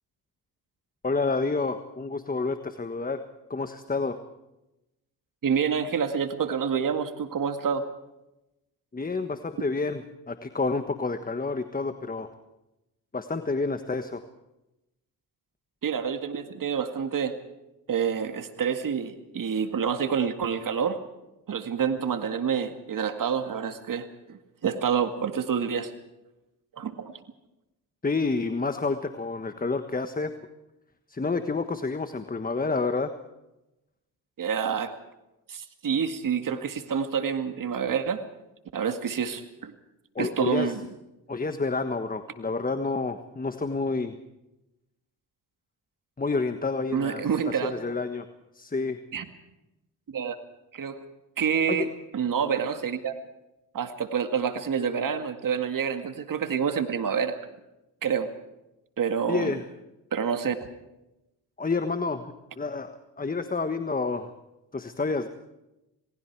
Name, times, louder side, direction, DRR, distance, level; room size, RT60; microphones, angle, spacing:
voice 1, 1.0-3.2 3.5-4.2 8.9-12.3 13.1-14.2 28.0-30.3 31.1-33.1 40.1-40.7 41.3-44.2 46.2-47.2 47.6-48.3 48.5-49.0 51.7-51.9 59.3-59.6 61.6-64.3 64.7-65.3, left 3 dB, 20° left, 9 dB, 1.4 m, -29 dB
voice 2, 5.4-7.9 15.8-17.4 17.9-21.0 21.5-25.9 26.8-27.1 34.4-34.9 35.5-38.2 38.7-39.7 40.2-40.8 46.9-47.7 49.1-49.2 50.1-50.4 50.7-51.0 51.4-53.1 53.7-57.4 58.0-58.3 59.0-59.6 60.1-60.6, right 7 dB, 55° right, 7 dB, 2.1 m, -28 dB
28.5 x 19.5 x 4.7 m, 0.94 s
cardioid pair, 70°, 40 cm